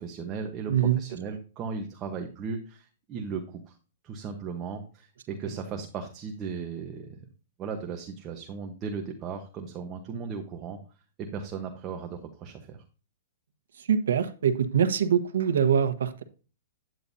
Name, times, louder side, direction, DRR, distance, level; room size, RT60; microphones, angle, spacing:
voice 1, 0.0-3.8 4.0-7.3 7.6-10.8 11.2-12.8, right 5 dB, 25° right, 1.1 m, -36 dB
voice 2, 0.7-1.0 13.8-16.2, right 8 dB, 90° right, 1.1 m, -24 dB
9.8 x 9.1 x 2.7 m
hypercardioid pair, 160°, 0 cm